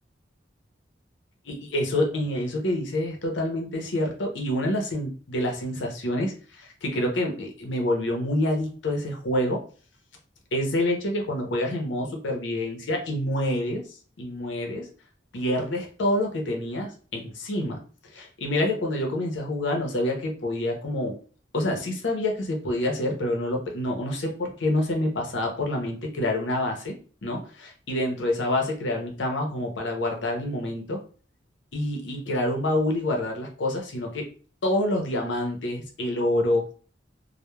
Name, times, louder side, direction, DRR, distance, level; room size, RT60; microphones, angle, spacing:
voice 1, 1.5-9.6 10.5-13.8 14.2-14.9 15.3-17.8 18.1-21.2 21.5-26.9 27.2-31.0 31.7-34.3 34.6-36.7, left 1 dB, 70° left, 2 dB, 0.7 m, -27 dB
3.0 x 2.1 x 2.2 m, 0.40 s
head